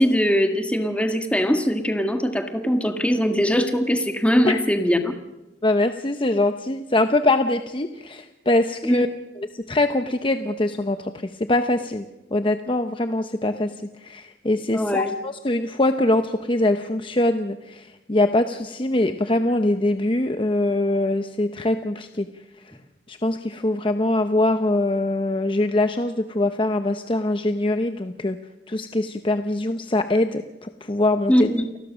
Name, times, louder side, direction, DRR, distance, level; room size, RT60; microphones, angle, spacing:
voice 1, 0.0-5.1 8.8-9.0 14.7-15.1 31.3-31.7, equal, 5° left, 5 dB, 1.7 m, -21 dB
voice 2, 5.6-9.1 9.4-12.1 12.3-22.3 23.1-28.4 28.7-31.5, left 2 dB, 30° left, 8 dB, 0.8 m, -23 dB
29.5 x 20.0 x 6.3 m, 1.1 s
head